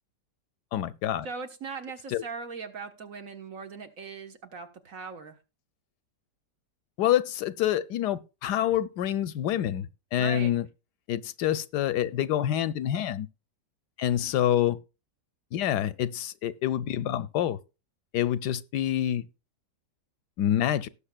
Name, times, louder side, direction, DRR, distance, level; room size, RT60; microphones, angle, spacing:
voice 1, 0.7-1.3 2.1-2.2 7.0-10.7 11.1-13.3 14.0-14.8 15.5-17.6 18.1-19.2 20.4-20.9, left 11 dB, 80° left, 1.2 m, -27 dB
voice 2, 1.2-5.4 10.2-10.5, right 5 dB, 55° right, 1.6 m, -39 dB
18.5 x 6.9 x 2.3 m
omnidirectional pair, 1.8 m